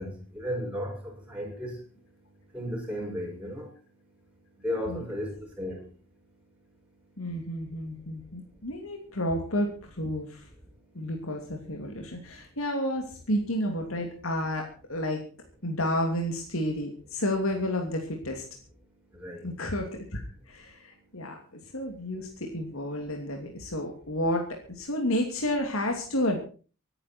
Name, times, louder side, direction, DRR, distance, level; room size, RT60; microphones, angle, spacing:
voice 1, 0.0-1.8 2.5-3.7 4.6-5.9 19.1-19.5, equal, 5° right, -1 dB, 6.7 m, -34 dB
voice 2, 7.2-10.5 10.9-15.2 15.6-18.4 19.4-26.5, left 1 dB, 75° left, 2 dB, 2.8 m, -31 dB
24.5 x 9.9 x 4.5 m, 0.39 s
head